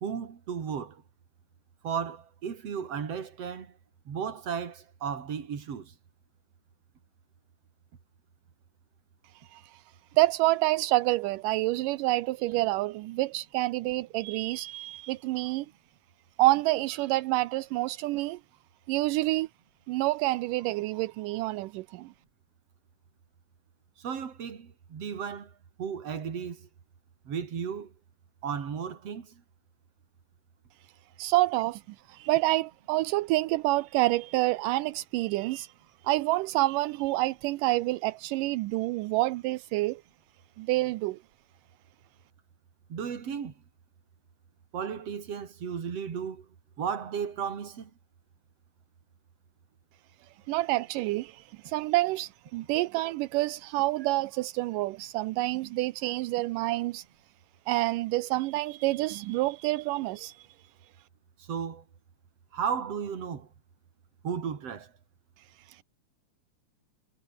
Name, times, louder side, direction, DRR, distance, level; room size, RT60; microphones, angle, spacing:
voice 1, 0.0-1.0 1.8-3.8 4.1-5.9 24.0-25.5 25.8-26.7 27.3-27.9 28.4-29.4 42.9-43.5 44.7-46.5 46.8-47.9 61.4-61.8 62.5-63.5 64.2-64.9, right 7 dB, 45° right, 3.6 m, -34 dB
voice 2, 9.5-9.8 10.2-15.7 16.4-18.4 18.9-19.5 19.9-22.1 31.2-31.8 32.1-35.7 36.0-40.0 40.6-41.2 50.5-57.0 57.7-60.5 65.7-65.8, right 19 dB, 80° right, 2.2 m, -28 dB
omnidirectional pair, 3.9 m